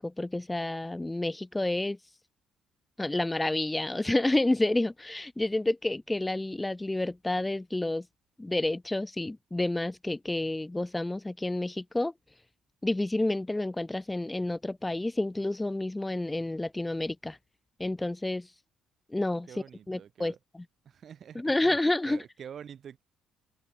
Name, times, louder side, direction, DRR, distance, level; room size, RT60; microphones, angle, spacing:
voice 1, 0.0-2.0 3.0-8.0 8.4-12.1 12.8-17.4 17.8-18.5 19.1-20.6 21.3-22.2, left 2 dB, 10° left, 1.1 m, -29 dB
voice 2, 19.5-20.4 20.8-21.8 22.0-23.0, right 8 dB, 50° right, 3.1 m, -46 dB
cardioid pair, 110°, 0 cm